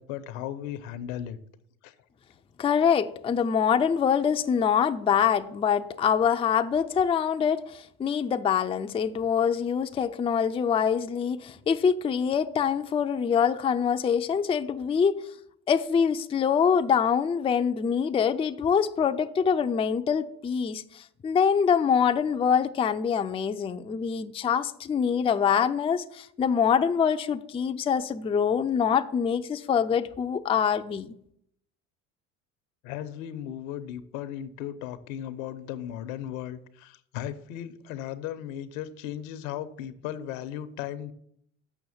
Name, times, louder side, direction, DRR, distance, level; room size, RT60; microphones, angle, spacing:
voice 1, 0.0-1.4 1.8-1.9 32.8-41.1, left 11 dB, 70° left, 0.9 m, -36 dB
voice 2, 2.6-15.2 15.7-31.1, left 7 dB, 15° left, 0.4 m, -25 dB
7.0 x 6.0 x 7.1 m
hypercardioid pair, 75°, 42 cm